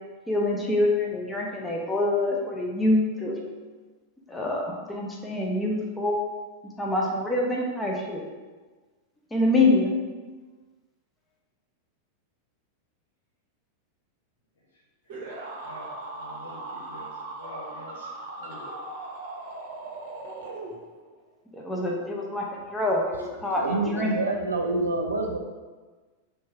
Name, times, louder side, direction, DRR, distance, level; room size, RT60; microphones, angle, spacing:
voice 1, 0.3-3.4 4.3-6.2 6.8-8.2 9.3-9.9 21.5-24.1, left 2 dB, 10° left, -1 dB, 0.7 m, -25 dB
voice 2, 15.1-18.8, equal, 60° left, -5 dB, 1.1 m, -45 dB
sound 1, 15.1-21.1, right 2 dB, 50° right, 0.7 m, -39 dB
voice 3, 23.6-25.4, right 2 dB, 75° right, 2 dB, 0.4 m, -27 dB
3.4 x 3.1 x 4.6 m, 1.3 s
figure-of-eight pair, 90°, 0 cm